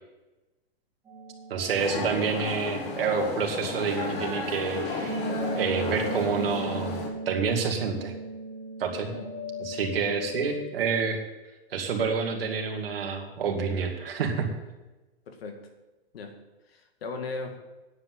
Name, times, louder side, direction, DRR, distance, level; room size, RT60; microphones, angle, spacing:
sound 1, 1.1-3.8 4.3-10.5, right 1 dB, 10° right, 2.6 m, -37 dB
voice 1, 1.5-5.2 5.5-7.0 7.3-8.1 8.8-9.1 9.6-11.2 11.7-14.5, right 5 dB, 65° right, 3 dB, 2.2 m, -28 dB
sound 2, 1.8-7.1, left 3 dB, 25° left, 1.5 m, -34 dB
voice 2, 15.3-15.6 16.1-16.3 16.7-17.6, left 3 dB, 70° left, 5 dB, 2.0 m, -38 dB
9.7 x 7.8 x 7.6 m, 1.1 s
hypercardioid pair, 175°, 31 cm